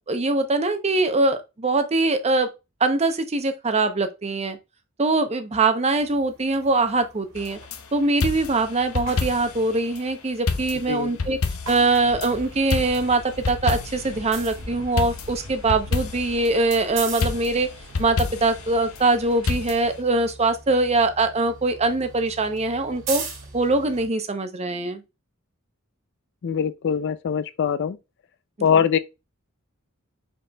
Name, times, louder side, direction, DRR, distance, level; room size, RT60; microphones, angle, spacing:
voice 1, 0.1-2.5 2.8-4.6 5.0-7.6 7.9-11.4 11.7-17.7 18.0-23.2 23.5-25.0, right 3 dB, 30° right, 0.7 m, -22 dB
sound 1, 5.9-12.9 13.3-24.1, right 4 dB, 60° right, 2.1 m, -41 dB
sound 2, 7.4-7.8 8.2-9.7 10.0-10.1 10.5-12.3 12.7-14.2 15.0-16.8 17.2-18.7 19.5-20.0, left 4 dB, 75° left, 0.7 m, -28 dB
sound 3, 12.0-19.5, equal, 85° right, 1.9 m, -42 dB
voice 2, 26.4-28.0 28.6-29.0, left 7 dB, 55° left, 0.4 m, -22 dB
5.3 x 4.2 x 2.2 m
head